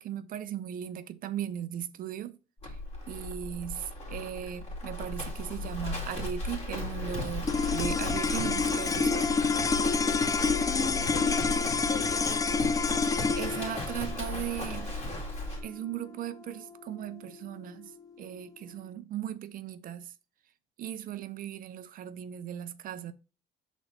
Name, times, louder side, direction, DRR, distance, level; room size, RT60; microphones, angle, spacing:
voice 1, 0.0-2.4 2.6-2.8 3.1-9.3 13.3-14.9 15.6-20.1 20.8-23.1, right 10 dB, 55° right, 0.6 m, -38 dB
Livestock farm animals working animals, 2.6-15.6, left 2 dB, 40° left, 2.5 m, -36 dB
sound 1, 7.4-17.9, left 5 dB, 20° left, 0.4 m, -29 dB
voice 2, 10.5-12.6, left 4 dB, 65° left, 2.3 m, -40 dB
6.1 x 4.0 x 4.1 m
cardioid pair, 110°, 17 cm